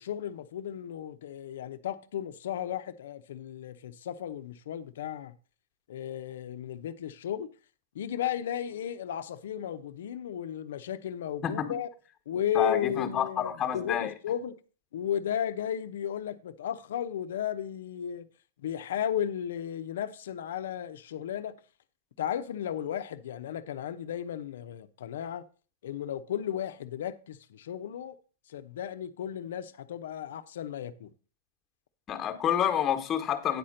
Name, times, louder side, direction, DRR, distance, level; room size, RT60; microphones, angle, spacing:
voice 1, 0.0-5.3 5.9-7.5 7.9-11.9 12.3-14.6 14.9-18.3 18.6-21.6 22.2-25.4 25.8-28.2 28.5-31.1, left 9 dB, 75° left, 0.8 m, -34 dB
voice 2, 12.5-14.1 32.1-33.6, left 9 dB, 25° left, 1.3 m, -28 dB
9.7 x 4.3 x 6.5 m
hypercardioid pair, 135°, 0 cm